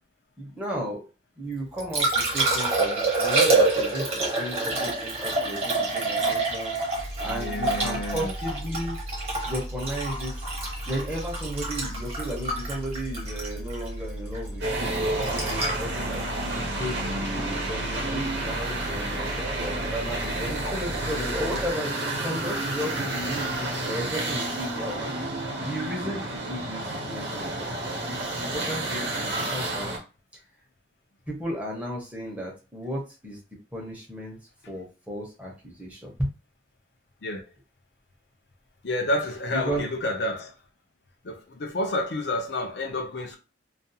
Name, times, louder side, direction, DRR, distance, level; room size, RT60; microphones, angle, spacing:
voice 1, 0.4-1.1 1.4-6.7 7.2-9.0 9.5-10.3 10.9-16.2 16.8-17.1 17.3-21.9 22.2-28.2 28.5-29.9 30.3-30.4 31.3-33.4 33.7-34.4 34.7-36.3 39.5-39.8, equal, 10° right, 0.7 m, -34 dB
Liquid, 1.5-17.6 20.4-20.6, right 3 dB, 35° right, 1.0 m, -27 dB
sound 1, 6.9-21.7, equal, 75° left, 0.8 m, -37 dB
voice 2, 7.3-8.3 16.4-16.8 37.2-37.4 38.8-40.5 41.2-43.4, left 1 dB, 60° left, 0.5 m, -30 dB
sound 2, 14.6-30.0, right 2 dB, 70° right, 0.8 m, -30 dB
2.4 x 2.3 x 2.7 m
head